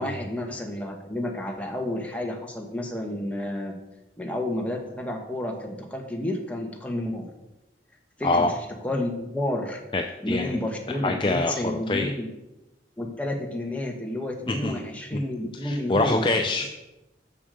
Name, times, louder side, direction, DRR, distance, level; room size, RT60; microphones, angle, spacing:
voice 1, 0.0-3.8 4.2-7.3 8.2-8.6 8.8-9.8 10.2-12.3 13.0-16.4, left 1 dB, 10° left, 1 dB, 1.3 m, -30 dB
voice 2, 9.9-10.6 10.9-12.1 14.5-14.8 15.6-16.7, left 2 dB, 25° left, 5 dB, 0.5 m, -25 dB
7.0 x 6.7 x 6.8 m, 0.99 s
head